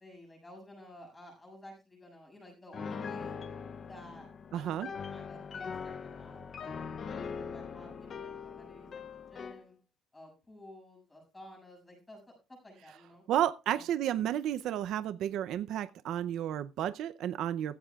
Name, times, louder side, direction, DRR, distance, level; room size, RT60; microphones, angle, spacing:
voice 1, 0.0-3.4 3.9-9.8 10.1-12.2 12.5-13.2 13.7-13.8, left 1 dB, 10° left, 6.9 m, -53 dB
Piano, 2.7-9.7, left 6 dB, 30° left, 0.6 m, -41 dB
voice 2, 4.5-4.9 13.3-17.8, right 11 dB, 55° right, 0.5 m, -32 dB
15.5 x 15.0 x 2.3 m
cardioid pair, 175°, 0 cm